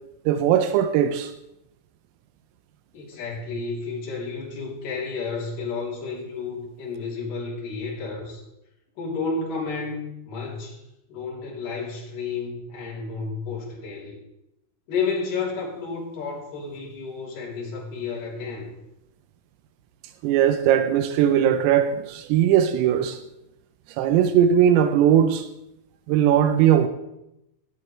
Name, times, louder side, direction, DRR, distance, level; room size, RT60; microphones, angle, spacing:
voice 1, 0.3-1.3 20.2-23.2 24.0-25.5 26.1-26.9, right 9 dB, 85° right, 3.4 m, -19 dB
voice 2, 2.9-8.4 9.0-10.8 11.1-14.2 14.9-18.7, left 4 dB, 45° left, 4.4 m, -31 dB
17.5 x 14.0 x 3.3 m
omnidirectional pair, 5.9 m